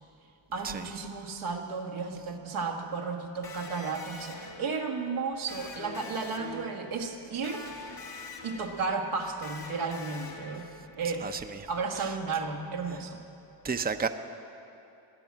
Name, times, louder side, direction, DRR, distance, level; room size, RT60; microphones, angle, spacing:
voice 1, 0.5-7.7 8.4-11.3 11.7-13.2, right 4 dB, 85° right, 1 dB, 1.8 m, -33 dB
Electric guitar, 3.4-11.1, left 3 dB, 60° left, 2.6 m, -45 dB
voice 2, 11.2-11.7 12.0-12.1 13.6-14.1, right 5 dB, 20° right, 8 dB, 0.8 m, -32 dB
17.5 x 10.0 x 7.4 m, 2.8 s
cardioid pair, 50°, 48 cm